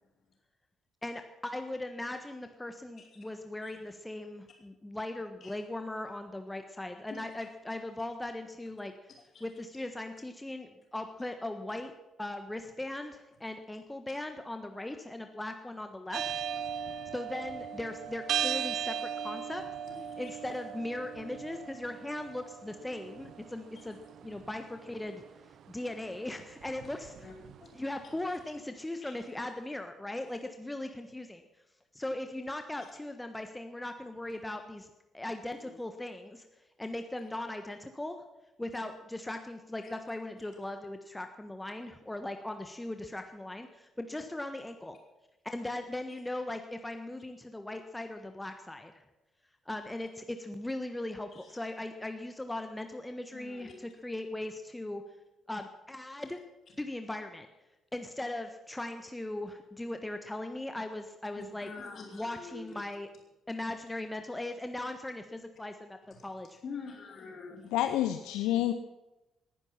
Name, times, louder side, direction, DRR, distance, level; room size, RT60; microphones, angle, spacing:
voice 1, 1.0-8.9 9.4-11.9 12.2-16.3 17.1-19.0 19.2-19.6 20.2-25.2 25.7-27.3 27.7-31.4 31.9-34.9 35.1-36.4 36.8-38.2 38.6-45.0 45.4-48.9 49.7-55.0 55.5-56.4 56.8-57.5 57.9-61.7 62.1-63.1 63.5-66.0 66.2-66.6, left 1 dB, 10° left, 6 dB, 1.4 m, -39 dB
sound 1, 16.1-28.2, right 8 dB, 55° right, 0.6 m, -38 dB
voice 2, 19.9-20.3 27.2-27.3 28.0-28.1 29.0-29.1 35.6-35.7 40.4-40.5 51.3-51.5 53.3-53.7 61.4-62.7 66.6-67.9, left 5 dB, 50° left, -1 dB, 5.0 m, -46 dB
voice 3, 67.7-68.7, left 13 dB, 65° left, 8 dB, 0.7 m, -28 dB
19.5 x 10.5 x 5.8 m, 1.0 s
figure-of-eight pair, 45°, 0 cm